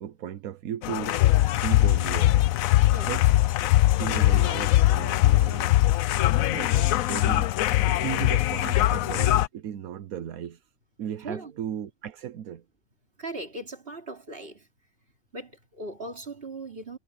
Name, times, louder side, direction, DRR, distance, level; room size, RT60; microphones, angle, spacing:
voice 1, 0.0-2.4 3.0-3.2 4.0-5.8 6.2-7.5 7.9-10.6 11.0-12.6, right 10 dB, 80° right, 1.3 m, -36 dB
sound 1, 0.8-9.5, left 15 dB, 75° left, 1.0 m, -21 dB
voice 2, 13.2-14.7 15.3-17.0, right 2 dB, 40° right, 3.5 m, -38 dB
omnidirectional pair, 1.5 m